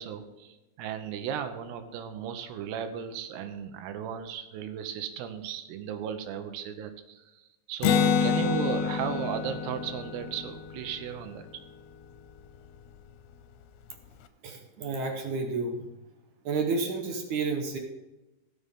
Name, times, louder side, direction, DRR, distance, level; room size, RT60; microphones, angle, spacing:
voice 1, 0.0-7.4 7.7-11.5, right 8 dB, 85° right, 8 dB, 2.9 m, -36 dB
Acoustic guitar, 7.8-11.5, left 7 dB, 80° left, 2.6 m, -28 dB
voice 2, 14.4-15.8 16.4-17.8, right 4 dB, 70° right, 3 dB, 2.0 m, -30 dB
17.0 x 6.9 x 3.6 m, 1.0 s
omnidirectional pair, 4.7 m